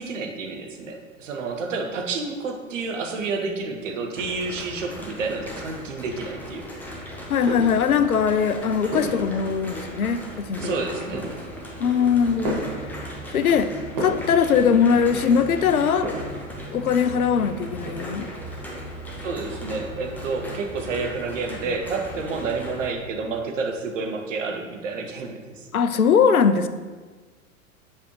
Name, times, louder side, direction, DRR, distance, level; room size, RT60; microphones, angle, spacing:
voice 1, 0.0-6.7 10.6-11.3 19.2-25.7, right 4 dB, 60° right, 3 dB, 1.0 m, -30 dB
sound 1, 4.0-23.7, right 1 dB, 40° right, 1.9 m, -39 dB
sound 2, 4.2-22.9, equal, 5° left, 0.5 m, -38 dB
voice 2, 7.3-10.7 11.8-12.6 13.3-13.7 14.0-16.1 16.7-18.3 25.7-26.7, left 6 dB, 80° left, 11 dB, 0.6 m, -21 dB
sound 3, 12.2-23.4, right 2 dB, 25° right, 1.2 m, -41 dB
7.5 x 5.2 x 3.1 m, 1.4 s
figure-of-eight pair, 95°, 43 cm